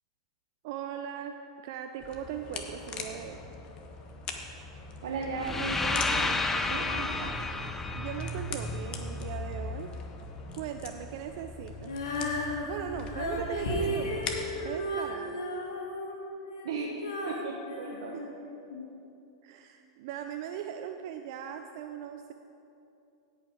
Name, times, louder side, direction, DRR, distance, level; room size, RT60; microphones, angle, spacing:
voice 1, 0.6-1.4 1.6-3.4 7.9-9.9 10.5-11.9 12.6-14.2 14.6-15.4 18.1-18.3 19.4-22.3, right 9 dB, 60° right, 6 dB, 0.5 m, -39 dB
sound 1, 2.0-14.7, left 3 dB, 35° left, 1.2 m, -40 dB
voice 2, 5.0-7.4 13.7-14.0 16.6-17.0 17.3-18.2, right 4 dB, 75° right, 0 dB, 1.0 m, -36 dB
sound 2, 5.3-9.4, left 3 dB, 10° left, 0.6 m, -31 dB
Female singing, 11.8-18.9, left 1 dB, 80° left, 1.7 m, -34 dB
16.5 x 5.7 x 4.9 m, 2.8 s
hypercardioid pair, 105°, 3 cm